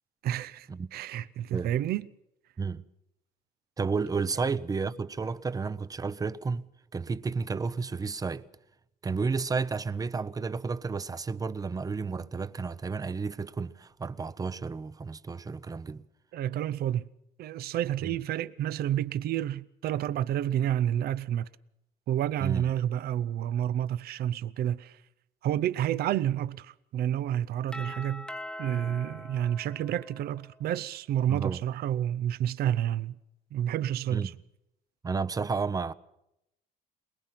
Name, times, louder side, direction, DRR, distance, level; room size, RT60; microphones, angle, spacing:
voice 1, 0.2-2.1 16.3-17.1 17.4-21.5 22.1-25.0 25.4-28.3 28.6-33.1 33.5-34.3, right 11 dB, 65° right, 0.8 m, -29 dB
voice 2, 3.8-8.5 9.0-16.1 18.0-18.2 22.4-22.7 31.3-31.6 34.1-34.3 35.0-35.9, right 4 dB, 20° right, 0.7 m, -32 dB
Doorbell, 27.7-30.5, left 1 dB, 5° left, 1.0 m, -42 dB
23.0 x 21.0 x 5.8 m
cardioid pair, 110°, 17 cm